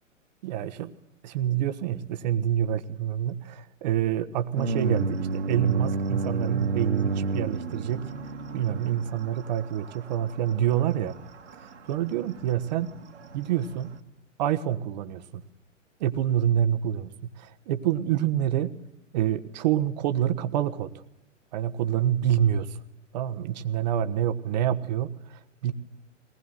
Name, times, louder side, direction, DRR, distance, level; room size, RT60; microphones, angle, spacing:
voice 1, 0.4-0.9 1.2-8.1 8.5-11.2 11.6-12.9 13.3-13.9 14.4-15.4 16.0-17.1 17.4-18.7 19.1-20.9 21.5-22.8 23.1-25.7, right 10 dB, 35° right, 11 dB, 1.4 m, -27 dB
sound 1, 4.6-14.0, right 3 dB, 65° right, 2.4 m, -33 dB
22.5 x 19.5 x 9.4 m, 0.82 s
figure-of-eight pair, 120°, 38 cm